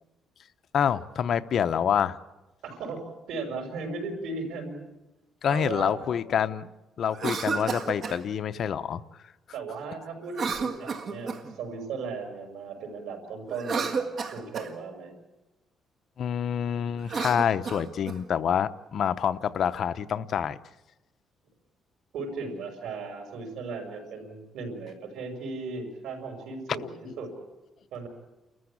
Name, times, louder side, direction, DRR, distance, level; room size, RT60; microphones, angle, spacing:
voice 1, 0.7-2.2 5.4-6.7 7.0-9.0 16.2-20.6 27.1-27.2, left 8 dB, 55° left, 11 dB, 0.8 m, -27 dB
voice 2, 2.6-4.8 5.5-5.9 9.5-14.1 14.3-15.1 22.1-27.3 27.9-28.1, right 4 dB, 90° right, 4 dB, 5.7 m, -36 dB
Cough, 7.1-8.2 10.3-11.6 13.5-14.7 17.0-18.2, right 5 dB, 50° right, 1.7 m, -31 dB
30.0 x 14.0 x 8.6 m, 1.1 s
cardioid pair, 130°, 0 cm